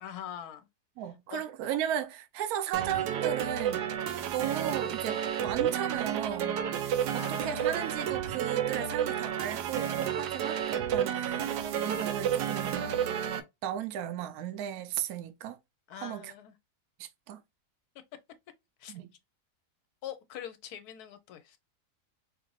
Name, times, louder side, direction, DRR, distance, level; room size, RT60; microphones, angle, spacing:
voice 1, 0.0-0.7 1.3-1.4 7.1-8.0 15.9-16.5 18.8-19.1 20.0-21.6, left 10 dB, 80° left, 1.1 m, -43 dB
voice 2, 1.0-3.9 4.2-6.6 7.1-11.4 11.8-12.9 13.6-15.6 16.0-16.3 17.0-17.4 18.9-19.1, right 10 dB, 75° right, 1.0 m, -35 dB
sound 1, 2.7-13.4, right 9 dB, 90° right, 1.3 m, -31 dB
4.9 x 2.6 x 3.0 m
omnidirectional pair, 1.7 m